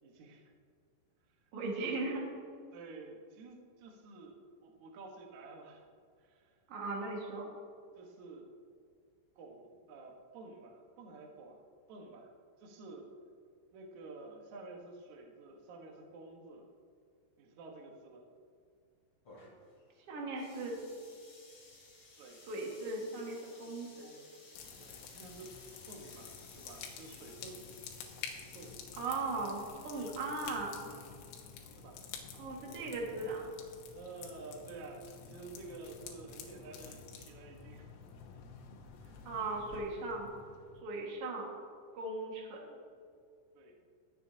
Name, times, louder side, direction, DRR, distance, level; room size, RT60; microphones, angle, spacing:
voice 1, 0.0-0.5 1.6-2.0 2.7-4.3 4.6-5.8 6.2-6.5 8.0-8.5 9.4-11.6 11.9-12.3 12.6-13.1 13.7-16.7 17.4-18.2 22.2-22.4 23.6-24.5 24.8-25.5 25.9-27.7 28.5-28.8 30.3-30.5 31.7-32.0 33.9-37.9 39.0-39.3 43.5-43.8, right 3 dB, 80° right, 1 dB, 1.6 m, -51 dB
voice 2, 1.5-2.3 6.7-7.5 20.1-20.8 22.5-24.1 29.0-30.9 32.4-33.5 39.2-40.3 40.8-41.6 41.9-42.8, right 2 dB, 60° right, -2 dB, 1.5 m, -38 dB
sound 1, 19.2-28.8, left 2 dB, 35° left, 3.0 m, -58 dB
sound 2, 24.5-40.8, left 6 dB, 85° left, 3.7 m, -50 dB
21.5 x 8.2 x 2.8 m, 2.3 s
omnidirectional pair, 5.7 m